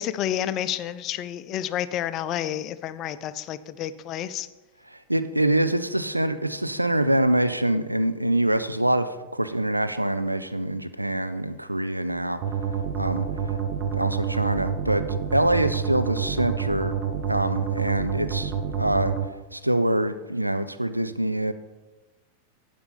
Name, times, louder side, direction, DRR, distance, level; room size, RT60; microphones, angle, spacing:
voice 1, 0.0-4.5, left 11 dB, 35° left, 13 dB, 0.4 m, -30 dB
voice 2, 4.9-12.4 13.0-13.3 13.9-16.9 17.3-18.5 18.8-19.1 19.5-21.5, right 1 dB, 85° right, 11 dB, 0.5 m, -25 dB
sound 1, 12.4-19.3, right 7 dB, 40° right, 1.0 m, -28 dB
11.5 x 5.2 x 5.2 m, 1.2 s
figure-of-eight pair, 90°, 0 cm